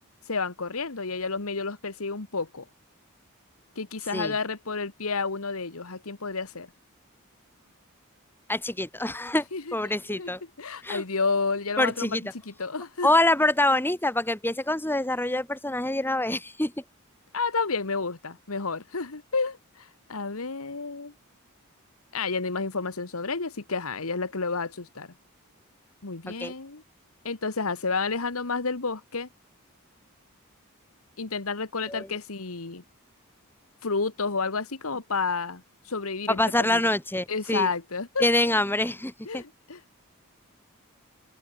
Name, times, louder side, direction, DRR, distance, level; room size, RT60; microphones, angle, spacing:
voice 1, 0.3-2.6 3.7-6.7 9.5-10.3 10.6-12.2 12.5-13.1 17.3-21.1 22.1-25.1 26.0-26.8 27.2-29.3 31.2-32.8 33.8-36.8 37.3-38.3 39.2-39.8, left 4 dB, 75° left, 1.5 m, -30 dB
voice 2, 8.5-9.4 9.7-10.4 10.8-11.0 11.8-12.2 13.0-16.7 26.3-26.5 31.9-32.1 36.3-37.7 38.2-39.4, left 1 dB, 10° left, 2.8 m, -25 dB
open air
head